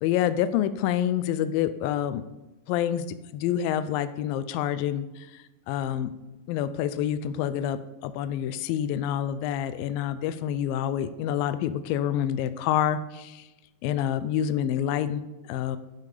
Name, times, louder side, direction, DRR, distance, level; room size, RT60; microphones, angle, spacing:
voice 1, 0.0-2.2 2.7-3.1 3.3-6.1 6.5-13.5 13.8-15.8, left 10 dB, 85° left, 12 dB, 2.1 m, -27 dB
10.5 x 6.5 x 5.0 m, 1.0 s
omnidirectional pair, 4.7 m